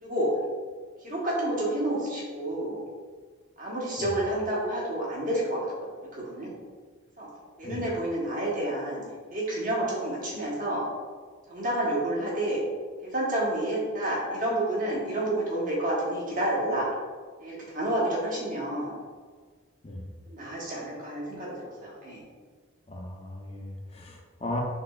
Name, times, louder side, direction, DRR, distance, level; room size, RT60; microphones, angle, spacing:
voice 1, 1.0-2.8 3.6-5.7 6.0-6.5 7.2-7.3 7.6-9.0 9.3-10.8 11.5-12.6 13.0-16.9 17.4-18.9 20.3-21.5 21.8-22.2, right 1 dB, 40° right, -5 dB, 1.2 m, -29 dB
voice 2, 22.9-24.6, left 1 dB, 25° left, 0 dB, 0.6 m, -36 dB
6.0 x 3.1 x 2.4 m, 1.5 s
head